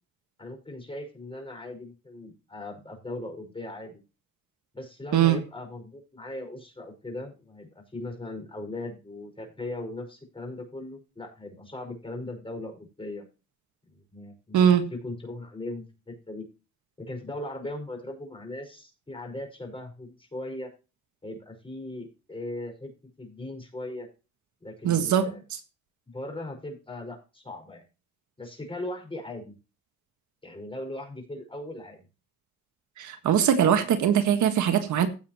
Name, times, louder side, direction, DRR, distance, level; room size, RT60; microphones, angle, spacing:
voice 1, 0.4-4.0 4.7-13.3 13.9-16.5 17.0-20.7 21.2-22.9 23.2-24.1 24.6-25.4 26.1-27.8 28.4-29.6 30.4-32.1, left 2 dB, 15° left, 4 dB, 5.4 m, -39 dB
voice 2, 24.8-25.3 33.0-35.1, right 9 dB, 75° right, 7 dB, 1.6 m, -21 dB
16.5 x 7.4 x 3.0 m, 0.31 s
cardioid pair, 90°, 30 cm